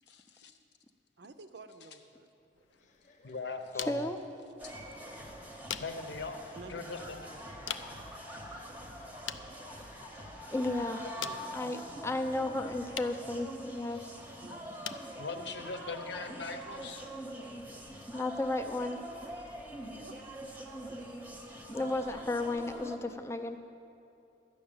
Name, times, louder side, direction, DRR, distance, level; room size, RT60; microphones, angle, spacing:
voice 1, 0.1-0.5 3.2-4.1 5.8-6.4 6.7-7.2 11.2-11.3 15.2-17.1, left 3 dB, 65° left, 6 dB, 0.9 m, -40 dB
voice 2, 1.2-2.7 6.5-7.2 11.2-12.1 12.6-12.7 14.4-14.7 19.9-20.2 20.9-21.0, right 3 dB, 65° right, 9 dB, 0.6 m, -52 dB
sound 1, 2.5-17.6, left 9 dB, 85° left, 0.5 m, -48 dB
sound 2, 2.7-14.4, left 3 dB, 40° left, 0.9 m, -59 dB
voice 3, 3.7-4.2 9.8-9.9 10.5-11.1 11.5-14.2 18.1-19.0 21.7-23.6, left 2 dB, 15° left, 6 dB, 0.5 m, -34 dB
sound 3, 4.6-23.0, equal, 10° right, 0.8 m, -45 dB
12.5 x 6.3 x 8.8 m, 2.8 s
head